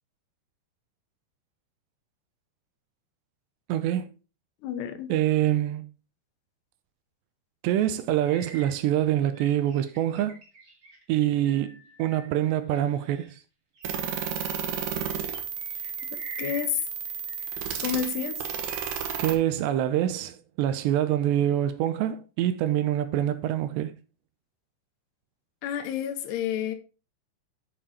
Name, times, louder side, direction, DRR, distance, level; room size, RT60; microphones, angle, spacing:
voice 1, 3.7-4.1 5.1-5.9 7.6-10.4 11.1-13.4 19.2-24.0, right 12 dB, 85° right, 2.9 m, -25 dB
voice 2, 4.6-5.1 16.4-16.8 17.8-18.4 25.6-26.8, left 9 dB, 80° left, 3.0 m, -29 dB
sound 1, 8.2-13.4 13.8-17.6 17.8-18.9, right 3 dB, 35° right, 1.5 m, -47 dB
sound 2, 13.8-19.3, right 7 dB, 70° right, 2.9 m, -32 dB
7.6 x 6.9 x 4.2 m
omnidirectional pair, 4.9 m